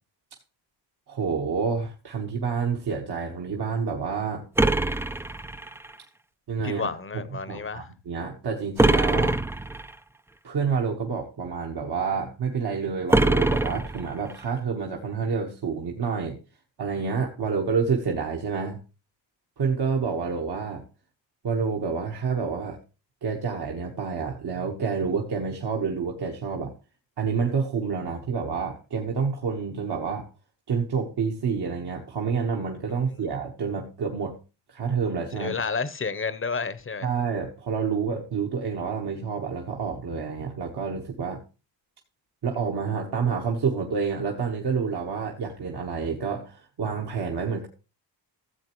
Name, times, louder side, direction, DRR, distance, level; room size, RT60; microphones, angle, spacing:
voice 1, 1.1-4.4 6.5-6.9 7.1-9.4 10.4-16.4 16.8-18.8 19.6-20.8 21.4-22.8 23.2-26.7 27.2-30.3 30.7-34.3 34.7-35.6 37.0-41.4 42.4-47.7, right 5 dB, 60° right, 1.4 m, -28 dB
sound 1, 4.6-5.9 8.8-9.9 13.1-14.4, right 2 dB, 5° right, 0.4 m, -23 dB
voice 2, 6.6-7.9 33.1-33.2 35.3-37.1, left 5 dB, 30° left, 0.8 m, -31 dB
14.5 x 7.5 x 3.1 m
cardioid pair, 65°, 45 cm